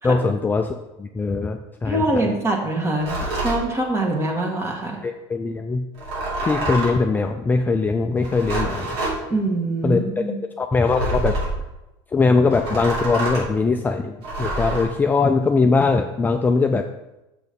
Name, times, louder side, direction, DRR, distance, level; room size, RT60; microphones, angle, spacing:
voice 1, 0.0-0.7 1.0-2.3 5.0-5.9 6.4-8.9 9.8-10.0 10.6-11.4 12.1-16.8, left 4 dB, 15° left, 5 dB, 0.4 m, -21 dB
voice 2, 1.9-5.0 9.3-10.4, right 2 dB, 20° right, 1 dB, 1.7 m, -24 dB
sound 1, 3.0-3.6 5.9-7.0 8.2-9.2 10.9-11.6 12.5-13.5 14.2-14.9, right 2 dB, 85° right, 3.3 m, -26 dB
6.7 x 6.1 x 5.2 m, 0.97 s
supercardioid pair, 120°, 12 cm